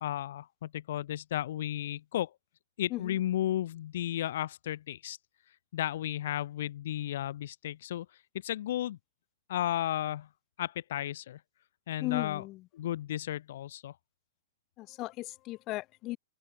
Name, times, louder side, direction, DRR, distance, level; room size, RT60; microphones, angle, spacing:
voice 1, 0.0-2.3 2.8-5.2 5.7-8.1 8.4-9.0 9.5-10.3 10.6-11.4 11.9-12.4 12.7-14.0, left 12 dB, 65° left, 1.6 m, -33 dB
voice 2, 12.0-12.6 14.8-16.2, left 18 dB, 35° left, 6.3 m, -36 dB
hypercardioid pair, 135°, 0 cm